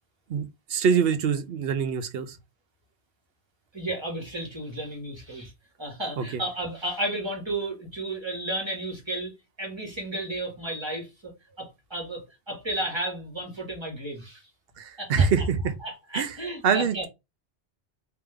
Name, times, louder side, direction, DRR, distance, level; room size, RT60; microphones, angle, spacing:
voice 1, 0.3-2.4 6.2-6.4 14.8-15.7 16.1-16.4 16.6-17.1, right 6 dB, 65° right, 0.8 m, -25 dB
voice 2, 3.7-5.5 5.8-14.4 15.0-15.3 15.8-17.1, right 1 dB, 25° right, 1.5 m, -33 dB
3.5 x 2.9 x 3.3 m
omnidirectional pair, 1.1 m